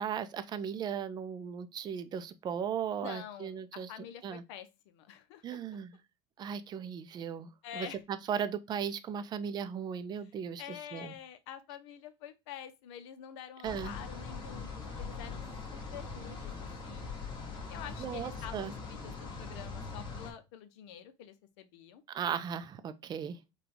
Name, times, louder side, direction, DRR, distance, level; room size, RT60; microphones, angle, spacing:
voice 1, 0.0-3.9 4.2-4.4 5.4-6.0 6.4-7.5 7.7-7.9 8.3-11.1 13.6-13.9 18.0-18.7 22.1-23.4, right 8 dB, 30° right, 0.4 m, -37 dB
voice 2, 3.0-5.6 7.6-8.0 10.6-15.4 15.7-17.1 17.7-22.0, left 9 dB, 75° left, 0.7 m, -47 dB
sound 1, 13.6-20.3, left 4 dB, 30° left, 1.6 m, -42 dB
4.8 x 2.3 x 3.1 m
supercardioid pair, 120°, 15 cm